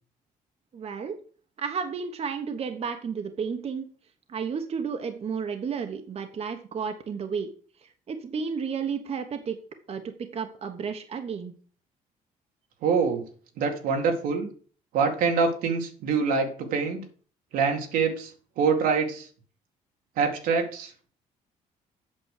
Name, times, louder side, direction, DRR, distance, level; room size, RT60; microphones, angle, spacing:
voice 1, 0.7-1.2 1.6-3.9 4.3-7.5 7.8-9.6 9.9-11.5, right 6 dB, 45° right, 6 dB, 1.2 m, -32 dB
voice 2, 12.8-13.2 13.6-14.5 14.9-17.0 17.5-18.3 18.6-19.3 20.2-20.9, right 5 dB, 85° right, 3 dB, 2.2 m, -25 dB
8.6 x 6.1 x 6.7 m, 0.42 s
cardioid pair, 95°, 14 cm